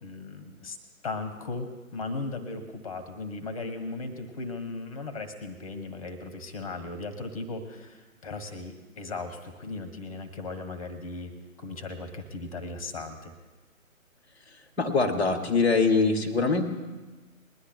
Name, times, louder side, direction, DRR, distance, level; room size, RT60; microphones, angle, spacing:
voice 1, 0.0-0.8 1.0-11.3 11.6-13.3, left 3 dB, 25° left, 9 dB, 1.0 m, -37 dB
voice 2, 14.8-16.6, left 4 dB, 5° left, -2 dB, 0.9 m, -23 dB
21.0 x 11.5 x 2.9 m, 1.2 s
figure-of-eight pair, 140°, 42 cm